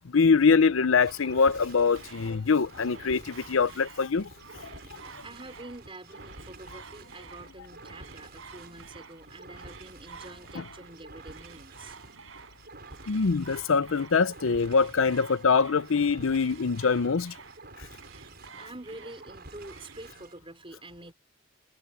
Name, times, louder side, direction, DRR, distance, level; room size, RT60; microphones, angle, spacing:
voice 1, 0.0-4.3 13.1-17.3, left 5 dB, 70° left, 0.6 m, -23 dB
sound 1, 1.0-20.4, right 3 dB, 50° right, 6.8 m, -50 dB
sound 2, 1.8-20.1, right 5 dB, 70° right, 7.3 m, -51 dB
voice 2, 4.8-12.0 18.6-21.1, right 2 dB, 25° right, 4.9 m, -46 dB
head